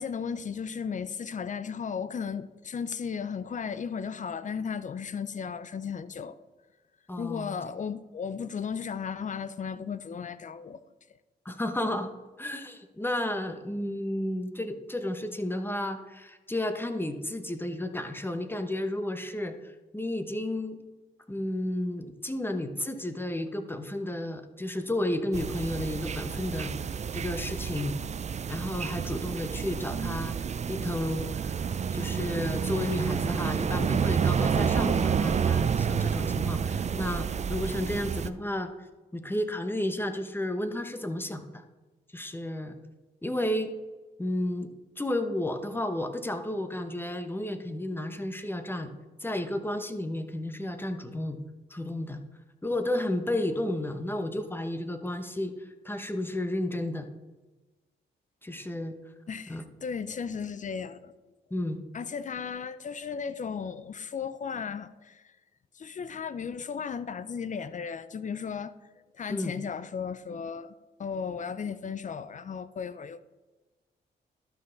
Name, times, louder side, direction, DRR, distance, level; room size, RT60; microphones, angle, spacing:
voice 1, 0.0-6.4 7.2-10.8 11.5-11.6 59.3-61.1 61.9-65.2 65.7-68.7 69.2-70.7 71.0-73.2, left 6 dB, 45° left, 0.6 m, -35 dB
voice 2, 7.1-7.6 11.4-12.1 12.4-20.8 21.3-28.0 28.5-30.4 30.7-31.6 31.9-38.7 39.1-41.6 42.1-42.8 43.2-43.7 44.2-44.7 45.0-48.9 49.2-51.4 51.7-52.2 52.6-55.5 55.8-57.1 58.4-58.9 59.5-59.6 61.5-61.8 69.3-69.5, left 1 dB, 10° left, 1.0 m, -32 dB
sound 1, 25.3-38.3, right 6 dB, 40° right, 0.5 m, -29 dB
12.0 x 5.5 x 4.0 m
cardioid pair, 60°, 18 cm